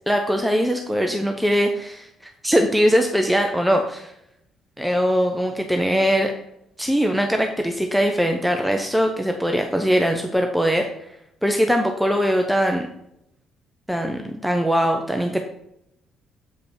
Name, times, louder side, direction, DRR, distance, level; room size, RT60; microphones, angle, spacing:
voice 1, 0.1-2.1 2.4-4.1 4.8-6.3 6.8-10.9 11.4-12.9 13.9-15.4, equal, ahead, 3 dB, 0.8 m, -21 dB
8.0 x 5.4 x 4.4 m, 0.80 s
figure-of-eight pair, 45°, 0 cm